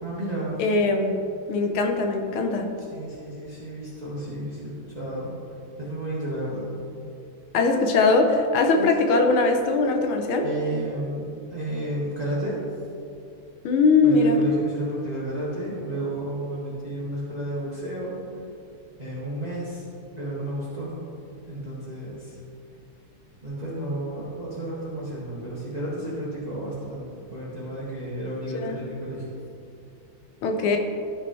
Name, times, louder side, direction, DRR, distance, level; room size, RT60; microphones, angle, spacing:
voice 1, 0.0-0.6 2.9-5.3 5.8-6.6 8.7-8.9 10.4-12.5 14.0-18.2 19.0-19.9 20.2-21.0 21.5-22.4 23.4-29.3, right 1 dB, 20° right, -8 dB, 1.6 m, -32 dB
voice 2, 0.6-1.2 1.5-2.8 7.5-10.5 13.6-14.4 28.5-28.8 30.4-30.8, left 3 dB, 75° left, 4 dB, 1.6 m, -21 dB
13.5 x 5.5 x 3.1 m, 2.5 s
omnidirectional pair, 2.4 m